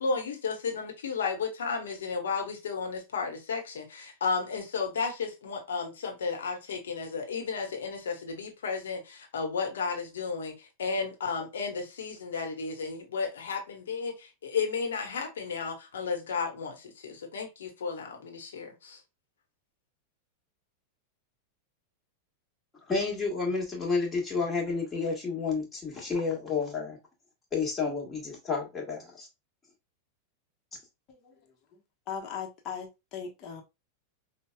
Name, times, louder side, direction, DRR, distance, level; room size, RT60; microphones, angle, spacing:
voice 1, 0.0-19.0, left 5 dB, 65° left, 1.1 m, -33 dB
voice 2, 22.9-27.0 27.5-29.3, left 4 dB, 15° left, 1.5 m, -30 dB
voice 3, 31.1-31.5 32.1-33.6, left 7 dB, 35° left, 1.1 m, -39 dB
5.4 x 2.3 x 2.3 m
figure-of-eight pair, 90°, 0 cm